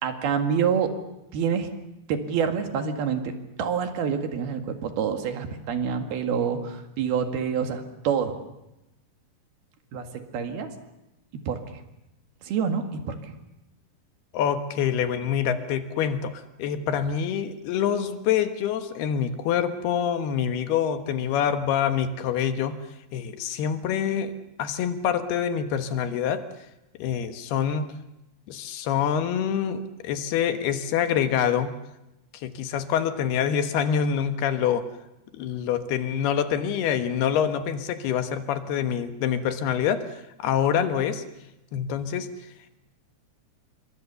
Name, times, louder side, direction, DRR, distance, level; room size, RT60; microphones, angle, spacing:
voice 1, 0.0-1.0 1.3-1.7 2.1-8.4 9.9-10.8 11.5-11.6 12.4-13.2, right 7 dB, 70° right, 6 dB, 3.9 m, -27 dB
voice 2, 14.3-22.8 23.1-24.3 24.6-26.4 27.0-27.9 28.5-31.7 32.4-34.9 35.3-40.1 40.4-41.2 41.7-42.3, left 8 dB, 75° left, 9 dB, 3.3 m, -26 dB
28.0 x 24.0 x 7.0 m, 0.90 s
omnidirectional pair, 4.6 m